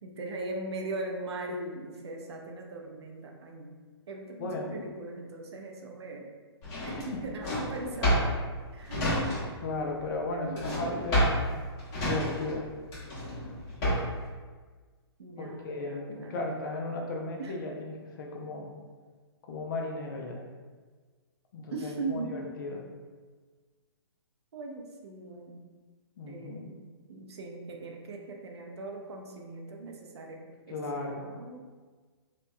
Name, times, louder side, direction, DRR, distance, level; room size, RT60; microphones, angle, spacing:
voice 1, 0.0-3.8 4.1-6.3 6.8-8.4 8.7-9.2 10.3-11.0 15.2-16.5 17.4-17.6 21.7-22.4 24.5-25.7 26.3-31.7, right 2 dB, 75° right, 2 dB, 0.5 m, -40 dB
voice 2, 4.4-4.9 7.0-7.2 9.6-11.5 12.0-12.7 15.4-18.7 19.5-20.4 21.5-22.8 26.2-26.7 30.7-31.3, left 2 dB, 50° left, 1 dB, 0.5 m, -36 dB
Drawer open or close, 6.6-9.7 10.0-14.2, equal, 30° left, 1.0 m, -29 dB
2.7 x 2.2 x 2.2 m, 1.4 s
hypercardioid pair, 140°, 14 cm